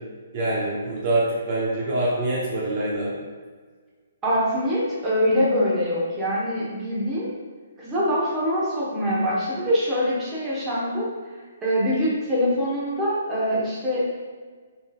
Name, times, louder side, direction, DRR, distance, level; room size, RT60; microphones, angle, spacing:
voice 1, 0.3-3.1, right 1 dB, 45° right, -5 dB, 1.0 m, -25 dB
voice 2, 4.2-7.3 7.8-11.1 11.6-14.0, equal, 15° right, -7 dB, 1.2 m, -24 dB
5.4 x 3.2 x 2.4 m, 1.5 s
hypercardioid pair, 145°, 0 cm